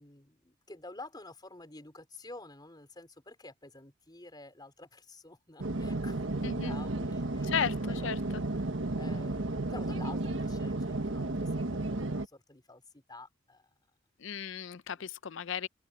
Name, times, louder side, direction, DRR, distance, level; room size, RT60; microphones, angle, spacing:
voice 1, 0.0-13.7 15.0-15.1, left 2 dB, 20° left, 4.5 m, -50 dB
sound 1, 5.6-12.3, right 2 dB, 75° right, 1.5 m, -33 dB
voice 2, 6.4-6.7 7.4-7.8 8.0-8.2 14.2-15.7, left 7 dB, 70° left, 0.6 m, -34 dB
open air
head